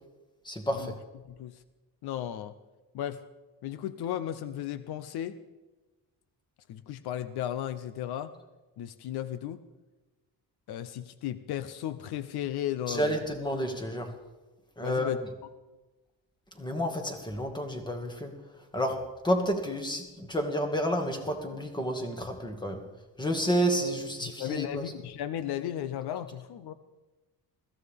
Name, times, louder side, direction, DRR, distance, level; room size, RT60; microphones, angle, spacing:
voice 1, 0.4-1.0 12.9-14.1 14.8-15.2 16.6-18.3 18.7-19.0 19.2-22.8 23.2-24.9, equal, 10° left, 4 dB, 1.9 m, -30 dB
voice 2, 1.2-1.6 2.0-2.5 2.9-3.2 3.6-5.4 6.7-8.3 8.8-9.6 10.7-13.2 14.8-15.2 24.2-26.7, left 11 dB, 75° left, 13 dB, 0.7 m, -35 dB
21.0 x 15.0 x 3.6 m, 1.2 s
cardioid pair, 125°, 39 cm